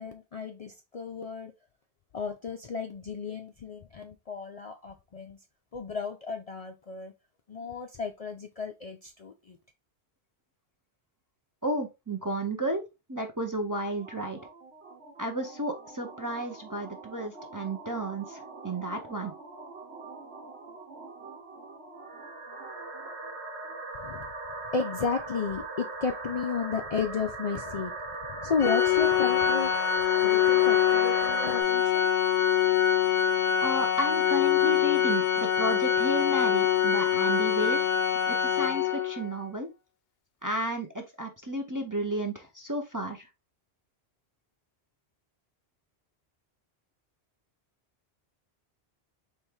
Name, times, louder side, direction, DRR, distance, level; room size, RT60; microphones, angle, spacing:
voice 1, 0.0-1.5 2.1-5.4 5.7-7.1 7.5-9.6 23.9-24.3 24.7-27.9 28.2-29.8 30.2-32.1, left 5 dB, 50° left, 0.4 m, -33 dB
voice 2, 11.6-12.8 13.1-14.4 15.2-19.3 33.6-37.9 38.3-39.7 40.4-43.3, right 1 dB, 25° right, 0.5 m, -32 dB
sound 1, 14.0-31.6, right 3 dB, 85° right, 1.4 m, -40 dB
Organ, 28.6-39.3, left 9 dB, 70° left, 0.8 m, -24 dB
4.5 x 3.3 x 3.4 m
omnidirectional pair, 1.1 m